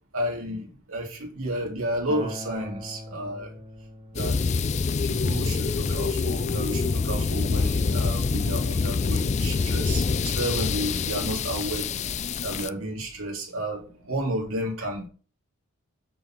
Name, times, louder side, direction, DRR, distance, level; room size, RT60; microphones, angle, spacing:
voice 1, 0.1-3.5 4.1-4.4 5.1-11.9 12.4-15.1, right 1 dB, 75° right, 0 dB, 2.8 m, -31 dB
Acoustic guitar, 2.1-7.3, left 1 dB, 25° right, 1.9 m, -43 dB
sound 1, 4.2-12.7, left 4 dB, 30° left, 0.3 m, -26 dB
6.6 x 6.0 x 6.1 m, 0.38 s
head